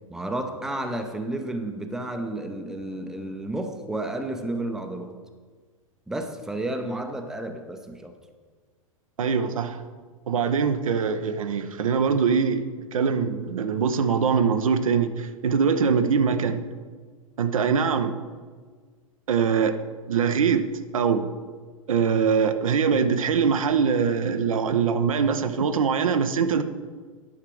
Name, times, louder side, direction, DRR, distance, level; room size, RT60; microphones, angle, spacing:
voice 1, 0.1-5.2 6.1-8.2, right 1 dB, 5° right, 6 dB, 0.7 m, -31 dB
voice 2, 9.2-9.8 10.3-12.6 12.9-16.6 17.4-18.1 19.3-19.7 20.1-20.6 20.9-21.3 21.9-26.6, right 6 dB, 70° right, 9 dB, 0.8 m, -23 dB
11.0 x 5.8 x 4.7 m, 1.5 s
figure-of-eight pair, 100°, 18 cm